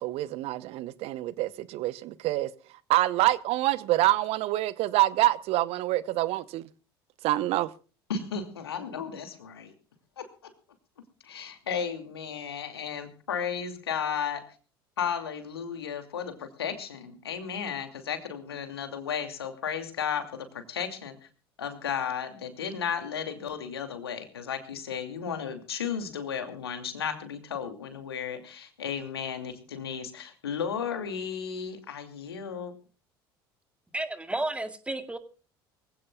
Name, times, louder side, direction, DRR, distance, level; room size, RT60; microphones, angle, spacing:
voice 1, 0.0-2.5 2.9-6.7 7.2-7.7, right 16 dB, 55° right, 0.9 m, -26 dB
voice 2, 8.1-9.7 10.2-10.3 11.2-14.4 15.0-21.2 21.6-32.7, left 7 dB, 80° left, 2.6 m, -34 dB
voice 3, 33.9-35.2, right 2 dB, 10° right, 2.1 m, -32 dB
24.0 x 16.5 x 2.3 m
figure-of-eight pair, 65°, 13 cm